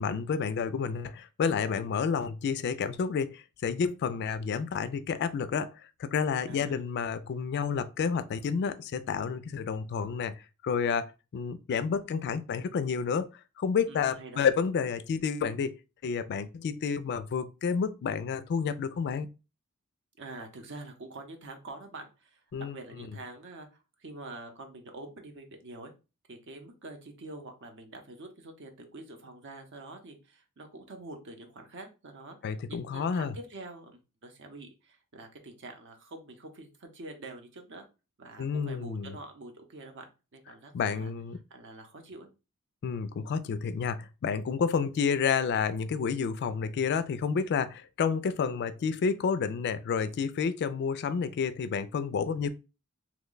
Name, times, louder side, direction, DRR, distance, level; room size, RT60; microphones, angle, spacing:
voice 1, 0.0-5.7 6.0-13.3 13.6-19.3 22.5-23.1 32.4-33.4 38.4-39.2 40.7-41.4 42.8-52.5, left 6 dB, 50° left, 0.3 m, -30 dB
voice 2, 6.5-6.8 13.9-14.5 20.2-23.7 24.0-25.9 26.3-37.9 38.2-41.1 41.5-42.3 48.1-48.2, right 2 dB, 55° right, 0.7 m, -46 dB
2.9 x 2.2 x 3.8 m
head